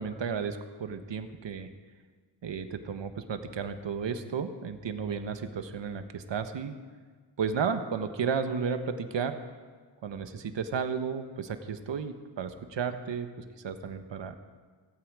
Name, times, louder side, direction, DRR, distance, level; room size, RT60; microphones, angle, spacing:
voice 1, 0.0-1.7 2.4-6.7 7.4-9.3 10.0-14.4, right 6 dB, 70° right, 8 dB, 1.4 m, -33 dB
16.5 x 16.0 x 5.0 m, 1.5 s
cardioid pair, 80°, 46 cm